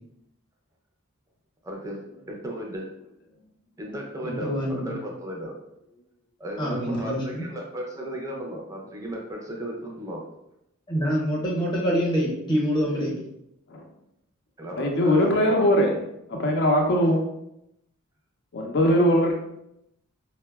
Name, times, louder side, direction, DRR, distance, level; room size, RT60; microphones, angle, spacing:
voice 1, 1.6-2.0 2.3-2.9 3.8-5.6 6.4-10.2 14.6-15.7, equal, 15° right, -1 dB, 0.4 m, -35 dB
voice 2, 4.2-4.9 6.6-7.5 10.9-13.2, equal, 20° left, -4 dB, 0.7 m, -26 dB
voice 3, 14.7-15.9 16.3-17.2 18.5-19.3, equal, 50° left, 1 dB, 0.4 m, -21 dB
4.4 x 2.0 x 2.3 m, 0.82 s
head